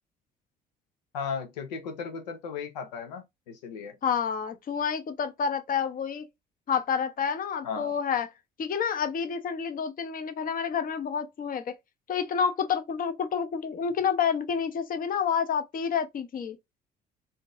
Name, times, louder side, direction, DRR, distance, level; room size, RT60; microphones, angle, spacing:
voice 1, 1.1-4.0 7.6-7.9, left 6 dB, 80° left, 0.6 m, -36 dB
voice 2, 4.0-6.2 6.7-8.3 8.6-11.6 12.1-16.6, left 7 dB, 40° left, 0.7 m, -29 dB
3.7 x 2.6 x 2.4 m
hypercardioid pair, 55°, 21 cm